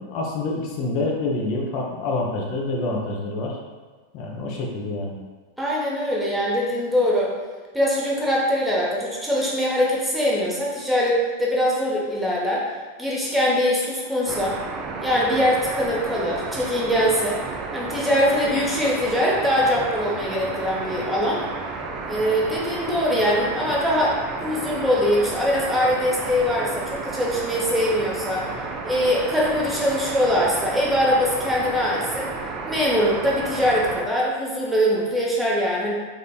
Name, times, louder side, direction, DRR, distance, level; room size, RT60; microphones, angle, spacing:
voice 1, 0.0-3.6 4.1-5.2, left 2 dB, 40° left, -1 dB, 0.7 m, -27 dB
voice 2, 5.6-7.3 7.7-12.6 13.0-14.6 15.0-17.4 17.7-21.4 22.1-28.5 28.8-32.3 32.7-35.9, equal, ahead, -5 dB, 0.9 m, -22 dB
sound 1, 14.3-34.0, right 4 dB, 30° right, 0.4 m, -32 dB
3.8 x 3.6 x 2.3 m, 1.4 s
figure-of-eight pair, 90°, 0 cm